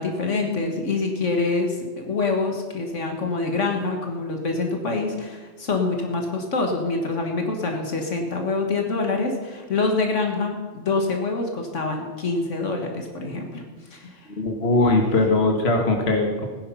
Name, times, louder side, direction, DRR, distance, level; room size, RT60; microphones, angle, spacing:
voice 1, 0.0-13.6 13.9-14.2, left 3 dB, 70° left, 3 dB, 1.9 m, -26 dB
voice 2, 14.3-16.5, left 2 dB, 55° left, 3 dB, 1.9 m, -20 dB
16.0 x 10.5 x 5.6 m, 1.4 s
omnidirectional pair, 1.3 m